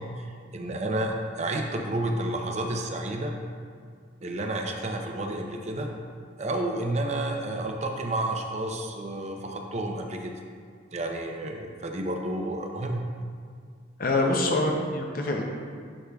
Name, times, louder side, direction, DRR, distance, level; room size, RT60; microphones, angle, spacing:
voice 1, 0.0-3.3 4.2-5.9 6.4-10.3 10.9-13.1 14.2-14.7, right 1 dB, 35° right, 2 dB, 0.5 m, -31 dB
voice 2, 14.0-15.4, left 2 dB, 45° left, 0 dB, 0.6 m, -25 dB
11.0 x 5.4 x 2.3 m, 2.1 s
head